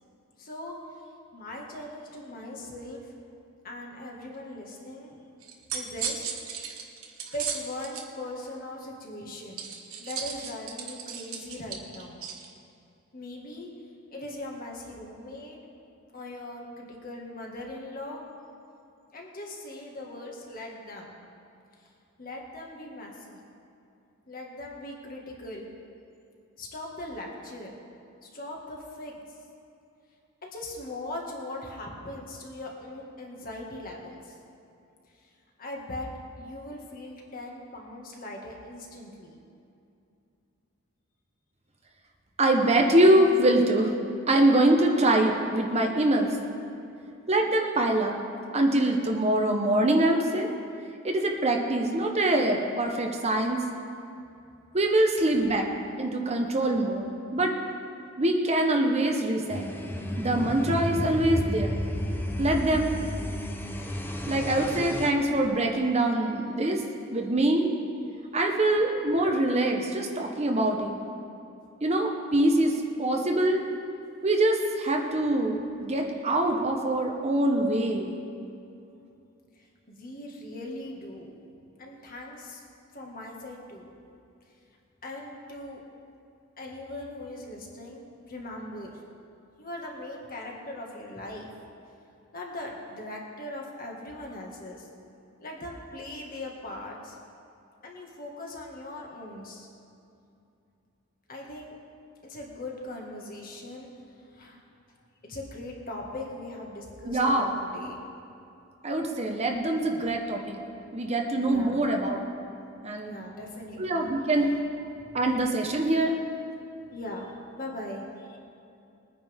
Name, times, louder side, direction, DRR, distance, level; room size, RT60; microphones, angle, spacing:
voice 1, 0.4-0.8 1.3-3.1 3.6-5.2 5.7-6.7 7.2-9.7 10.0-12.2 13.1-13.7 14.1-15.6 16.1-18.2 19.1-21.2 22.2-23.4 24.3-25.7 26.6-27.7 28.2-29.1 30.4-34.3 35.6-36.1 36.4-39.4 79.9-81.3 81.8-82.6 82.9-83.9 85.0-85.8 86.6-88.9 89.6-91.5 92.3-94.9 95.4-97.2 97.8-99.7 101.3-101.7 102.2-103.9 104.3-104.6 105.2-108.0 111.4-111.9 113.0-114.1 114.9-115.3 116.9-118.4, left 1 dB, 45° left, -1 dB, 1.9 m, -40 dB
sound 1, 5.4-8.0 9.6-12.5, right 7 dB, 75° right, 1.4 m, -36 dB
voice 2, 42.4-43.9 44.3-46.3 47.3-48.2 48.5-50.5 51.0-53.6 54.7-55.7 56.0-57.5 58.2-59.7 60.2-61.8 62.4-62.9 64.3-66.8 67.1-67.7 68.3-71.0 71.8-73.6 74.2-78.1 107.0-107.5 108.8-110.6 110.9-112.2 112.8-113.1 113.8-114.5 115.1-116.2, right 1 dB, 30° right, 2 dB, 1.0 m, -24 dB
sound 2, 59.5-65.1, equal, 10° left, 0.7 m, -32 dB
21.0 x 9.7 x 3.6 m, 2.6 s
head